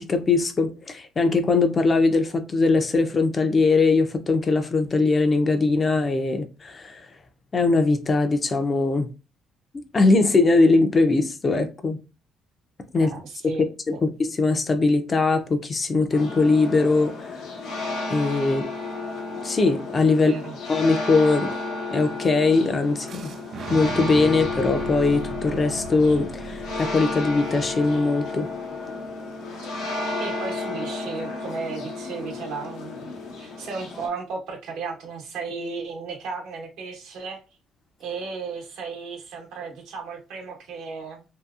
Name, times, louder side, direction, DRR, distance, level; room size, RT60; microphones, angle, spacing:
voice 1, 0.0-7.2 7.5-9.1 9.9-12.0 12.9-13.1 13.4-17.5 18.1-18.7 19.4-20.3 20.7-21.5 21.9-23.3 23.7-28.5, left 3 dB, 30° left, 0.4 m, -21 dB
voice 2, 13.0-13.6 13.9-14.0 20.2-20.5 30.2-37.4 38.0-41.2, right 4 dB, 80° right, 0.9 m, -35 dB
sound 1, 16.1-34.1, left 3 dB, 90° left, 0.8 m, -32 dB
Boom, 23.1-28.9, right 5 dB, 50° right, 0.3 m, -38 dB
2.8 x 2.7 x 2.4 m
cardioid pair, 120°, 0 cm